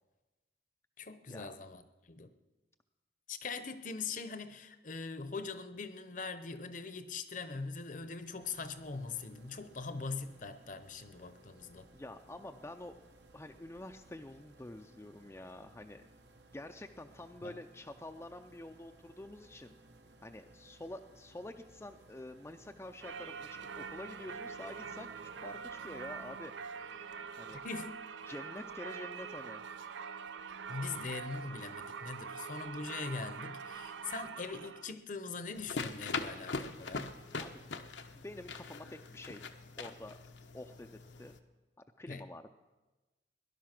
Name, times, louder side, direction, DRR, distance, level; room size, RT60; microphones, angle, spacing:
voice 1, 1.0-2.3 3.3-11.9 17.4-17.5 27.5-28.0 30.7-37.1 42.1-42.2, left 4 dB, 45° left, 0.8 m, -42 dB
sound 1, 7.9-27.3, right 2 dB, 70° right, 1.1 m, -61 dB
voice 2, 11.9-12.9 13.3-16.1 16.5-19.7 20.2-25.1 25.4-26.7 27.4-27.6 28.2-29.6 37.4-37.7 38.1-39.4 39.8-40.2 40.5-40.9 41.2-41.3 42.0-42.5, left 1 dB, 15° left, 0.4 m, -48 dB
Singing / Church bell, 23.0-34.9, right 6 dB, 90° right, 0.6 m, -44 dB
sound 2, 35.5-41.4, left 4 dB, 85° left, 0.9 m, -42 dB
18.0 x 11.5 x 5.9 m
head